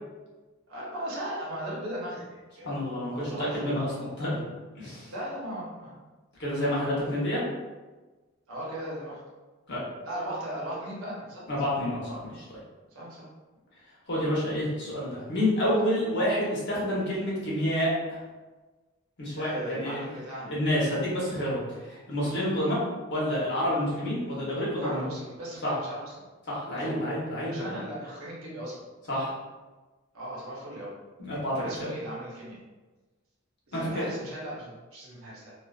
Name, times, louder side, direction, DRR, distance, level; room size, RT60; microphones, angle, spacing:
voice 1, 0.7-2.7 3.1-3.8 5.1-6.1 8.5-9.2 10.0-11.4 12.9-13.3 19.4-20.5 24.8-26.1 26.7-27.0 27.4-28.9 30.1-30.9 31.6-32.6 33.7-35.5, right 1 dB, 85° right, -5 dB, 0.9 m, -37 dB
voice 2, 2.6-4.4 4.8-5.1 6.4-7.4 9.7-9.8 11.5-12.4 14.1-18.2 19.2-20.0 20.5-22.8 23.1-25.1 25.6-25.7 26.5-27.7 29.1-29.3 31.2-31.7 33.7-34.0, equal, 55° left, -6 dB, 0.9 m, -28 dB
2.4 x 2.3 x 2.3 m, 1.2 s
head